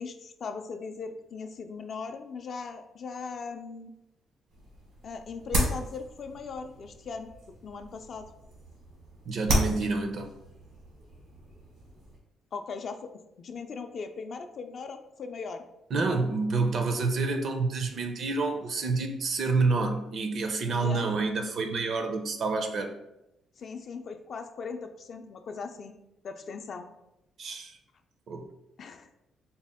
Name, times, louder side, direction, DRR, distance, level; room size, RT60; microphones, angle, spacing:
voice 1, 0.0-3.9 5.0-7.3 7.6-8.3 12.5-13.1 13.4-15.6 20.8-21.1 23.6-25.9 26.2-26.9 28.8-29.1, left 5 dB, 55° left, 7 dB, 0.3 m, -39 dB
sound 1, 4.5-12.2, right 1 dB, 80° right, 1.3 m, -34 dB
voice 2, 9.3-10.3 15.9-22.9 27.4-27.8 28.3-28.5, right 3 dB, 60° right, 6 dB, 0.5 m, -28 dB
4.1 x 2.1 x 3.5 m, 0.88 s
cardioid pair, 90°, 0 cm